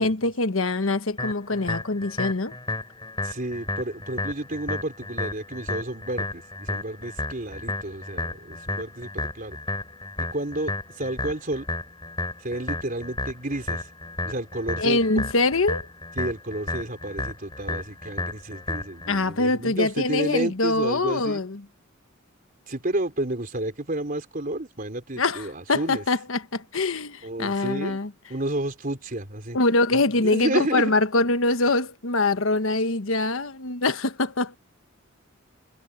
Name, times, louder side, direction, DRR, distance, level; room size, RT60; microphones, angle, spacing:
voice 1, 0.0-2.5 14.8-15.9 19.1-21.6 25.2-28.1 29.5-34.6, left 2 dB, 80° left, 1.3 m, -24 dB
sound 1, 1.2-19.2, left 2 dB, 20° left, 7.3 m, -33 dB
voice 2, 3.2-9.6 10.2-11.7 12.4-13.9 14.2-15.0 16.2-21.4 22.7-26.0 27.2-28.0 28.3-29.6 29.9-30.9, right 1 dB, 45° right, 4.0 m, -31 dB
head